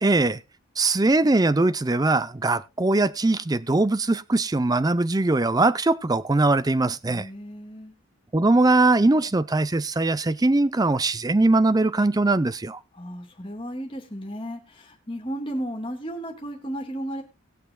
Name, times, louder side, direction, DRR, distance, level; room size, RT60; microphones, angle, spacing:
voice 1, 0.0-0.4 0.8-7.3 8.3-12.8, right 2 dB, 15° right, 15 dB, 0.5 m, -21 dB
voice 2, 7.0-7.9 13.0-17.2, equal, 25° left, 2 dB, 2.8 m, -34 dB
20.0 x 6.8 x 2.3 m, 0.27 s
head